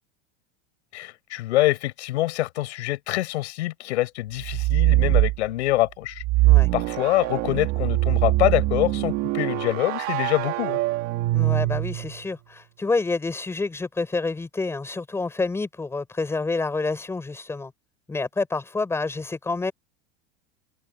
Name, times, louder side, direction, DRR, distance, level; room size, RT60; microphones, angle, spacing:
voice 1, 0.9-6.2 6.7-10.8, left 17 dB, 80° left, 7.6 m, -25 dB
sound 1, 4.4-5.4 6.2-12.2, right 19 dB, 40° right, 2.8 m, -23 dB
voice 2, 11.3-17.7 18.1-19.7, left 3 dB, 5° left, 7.5 m, -28 dB
supercardioid pair, 175°, 34 cm